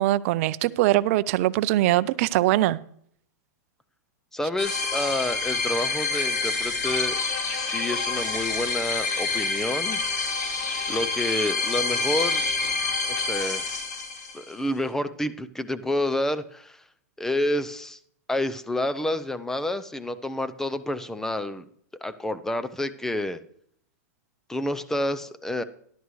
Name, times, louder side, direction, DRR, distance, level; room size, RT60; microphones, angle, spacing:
voice 1, 0.0-2.8, right 16 dB, 55° right, 17 dB, 0.5 m, -22 dB
voice 2, 4.3-7.2 7.5-10.0 10.9-12.4 13.1-13.7 14.3-16.8 17.2-18.0 18.3-21.7 22.0-23.4 24.5-25.6, left 1 dB, 5° left, 13 dB, 0.6 m, -29 dB
sound 1, 4.6-14.5, left 4 dB, 80° left, 3.9 m, -27 dB
13.5 x 11.5 x 3.1 m, 0.65 s
hypercardioid pair, 135°, 9 cm